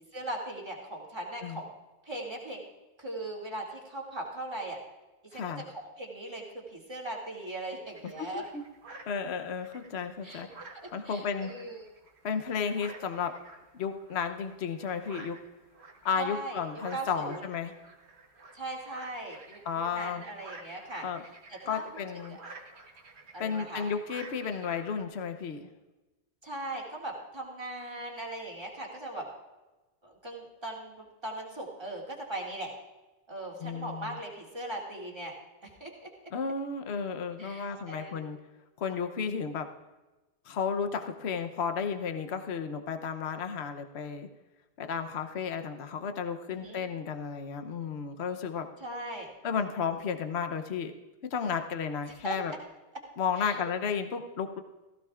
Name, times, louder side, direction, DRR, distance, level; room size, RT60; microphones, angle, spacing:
voice 1, 0.1-1.7 2.0-2.6 3.0-4.8 5.3-5.4 5.7-8.4 10.2-10.5 10.7-11.9 16.1-16.6 16.9-17.5 18.5-21.1 21.5-22.4 23.3-23.8 26.4-29.3 30.0-32.7 33.3-35.3 35.6-36.1 37.4-38.2 46.5-46.8 48.8-49.3 52.1-52.6 53.4-53.6, right 1 dB, 20° right, -3 dB, 2.4 m, -39 dB
voice 2, 5.3-5.6 8.3-8.6 9.1-10.5 10.9-11.5 12.2-13.3 13.7-15.4 16.0-17.7 19.7-20.2 21.0-21.2 21.7-22.4 23.4-25.7 33.6-34.2 36.3-38.4 38.8-39.7 40.5-44.3 44.8-48.7 49.4-50.9 51.3-52.5 53.2-54.6, left 6 dB, 70° left, 7 dB, 1.1 m, -33 dB
sound 1, 7.9-25.0, right 3 dB, 65° right, 1.5 m, -51 dB
17.0 x 15.0 x 2.4 m, 1.1 s
omnidirectional pair, 1.2 m